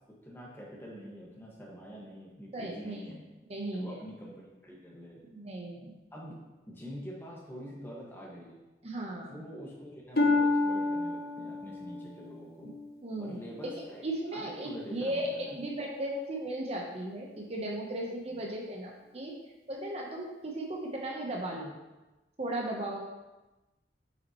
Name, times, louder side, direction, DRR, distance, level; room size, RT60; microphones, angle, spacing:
voice 1, 0.2-3.2 3.7-5.2 6.1-6.3 6.7-8.6 9.3-12.7 13.2-15.6 18.3-18.4, equal, 15° left, -5 dB, 1.6 m, -45 dB
voice 2, 2.5-3.0 3.5-4.0 5.3-6.0 8.8-9.4 13.0-19.3 19.7-21.7 22.4-23.0, right 1 dB, 35° right, -1 dB, 0.9 m, -36 dB
Harp, 10.2-13.9 14.4-14.9 15.5-15.6, left 3 dB, 60° left, 0.9 m, -30 dB
8.6 x 5.8 x 3.0 m, 1.1 s
head